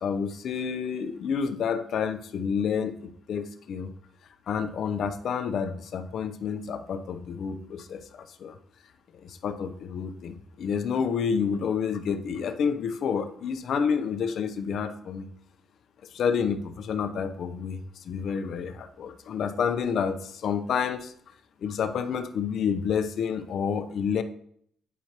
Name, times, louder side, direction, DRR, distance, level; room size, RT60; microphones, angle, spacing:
voice 1, 0.0-3.9 4.5-8.6 9.2-15.3 16.1-21.1 21.6-24.2, left 6 dB, 65° left, 8 dB, 0.6 m, -29 dB
9.2 x 4.6 x 2.9 m, 0.64 s
cardioid pair, 90°, 0 cm